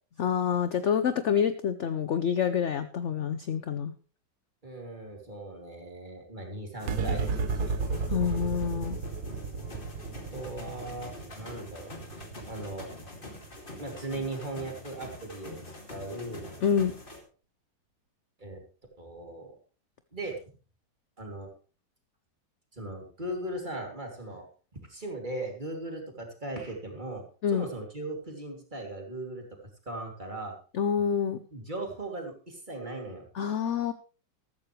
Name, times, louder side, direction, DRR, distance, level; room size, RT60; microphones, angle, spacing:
voice 1, 0.2-4.0 8.1-9.0 16.6-16.9 27.4-27.6 30.7-31.4 33.3-33.9, left 7 dB, 60° left, 11 dB, 0.8 m, -27 dB
voice 2, 4.6-7.8 10.3-12.0 12.4-12.9 13.8-15.6 15.9-16.5 18.4-18.6 19.0-19.6 20.1-20.4 21.2-21.5 22.7-24.5 24.7-27.2 27.5-29.4 29.8-30.5 31.0-31.1 31.5-33.3, right 2 dB, 25° right, 1 dB, 2.9 m, -38 dB
sound 1, 6.8-17.2, left 1 dB, 30° left, 2.5 m, -45 dB
sound 2, 6.9-13.6, right 4 dB, 70° right, 1.5 m, -34 dB
14.0 x 13.5 x 3.2 m, 0.37 s
omnidirectional pair, 1.9 m